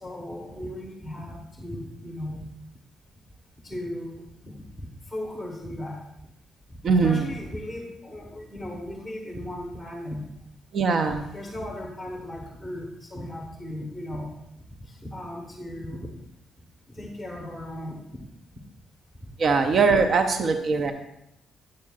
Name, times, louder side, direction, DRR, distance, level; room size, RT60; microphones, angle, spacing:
voice 1, 0.0-2.4 3.6-4.5 5.1-6.0 7.0-10.2 11.3-14.3 14.9-16.1 16.9-18.3 19.7-19.8, left 1 dB, 5° right, -1 dB, 1.1 m, -36 dB
voice 2, 6.8-7.2 10.7-11.3 19.4-20.9, right 4 dB, 55° right, 6 dB, 0.6 m, -21 dB
8.8 x 7.5 x 2.4 m, 0.82 s
cardioid pair, 90°, 0 cm